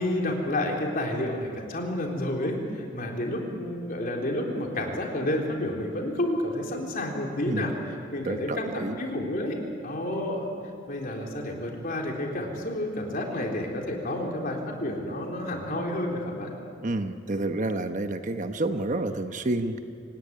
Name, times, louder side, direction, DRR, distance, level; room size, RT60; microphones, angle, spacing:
voice 1, 0.0-9.6 9.8-10.5 10.9-16.5, left 1 dB, 45° left, 0 dB, 3.8 m, -30 dB
voice 2, 8.2-9.0 16.8-19.8, right 2 dB, 40° right, 7 dB, 1.0 m, -29 dB
26.5 x 17.0 x 9.6 m, 2.5 s
head